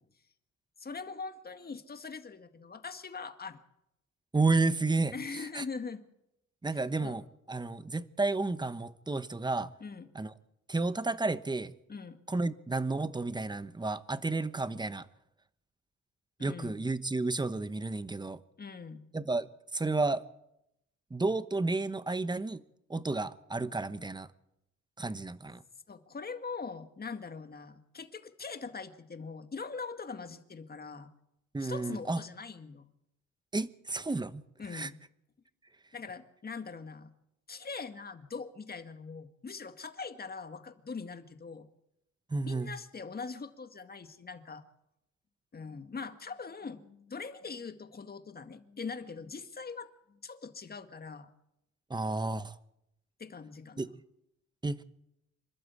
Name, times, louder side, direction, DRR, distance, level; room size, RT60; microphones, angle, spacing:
voice 1, 0.8-3.6 5.1-6.0 6.7-7.2 9.8-10.1 11.9-12.2 16.4-16.8 18.6-19.0 25.9-31.1 31.6-32.9 34.6-35.0 35.9-37.1 37.5-41.7 42.4-44.6 45.5-51.3 53.2-54.0, left 4 dB, 30° left, 1.9 m, -42 dB
voice 2, 4.3-5.1 5.5-5.6 6.6-9.7 10.1-10.3 10.7-11.7 12.3-15.0 16.4-18.4 19.1-19.5 19.7-20.2 21.1-22.6 22.9-24.3 25.0-25.6 31.5-32.2 33.5-34.4 34.7-34.9 42.3-42.7 51.9-52.6 53.8-54.0 54.6-54.8, right 3 dB, 15° right, 1.0 m, -31 dB
26.5 x 12.0 x 8.4 m
cardioid pair, 90°, 30 cm